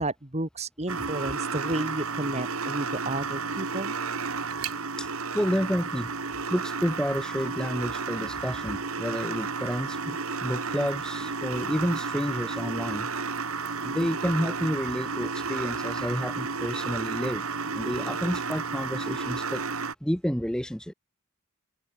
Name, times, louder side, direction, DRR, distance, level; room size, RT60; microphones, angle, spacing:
voice 1, 0.0-3.9, right 1 dB, 30° right, 1.9 m, -32 dB
sound 1, 0.9-19.9, right 4 dB, 75° right, 2.3 m, -32 dB
voice 2, 5.3-6.1 6.5-13.1 13.8-17.4 17.7-19.6 20.0-20.9, equal, 5° left, 1.0 m, -30 dB
open air
head